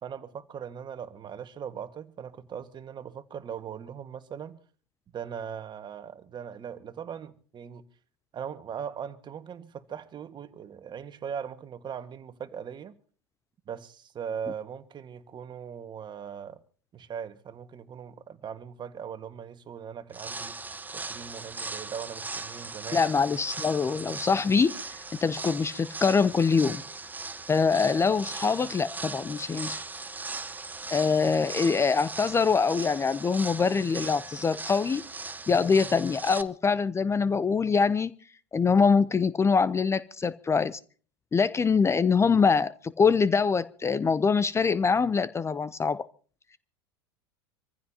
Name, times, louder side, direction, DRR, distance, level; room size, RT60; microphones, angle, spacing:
voice 1, 0.0-4.6 5.1-7.8 8.3-12.9 13.6-16.6 16.9-20.6 20.9-23.1, right 7 dB, 35° right, 1.7 m, -39 dB
sound 1, 20.1-36.4, right 3 dB, 10° right, 1.2 m, -39 dB
voice 2, 22.9-24.8 25.2-26.8 27.5-29.8 30.9-35.0 35.5-38.1 38.5-40.8 41.3-46.1, left 5 dB, 20° left, 0.7 m, -24 dB
26.0 x 15.5 x 2.9 m
hypercardioid pair, 85°, 14 cm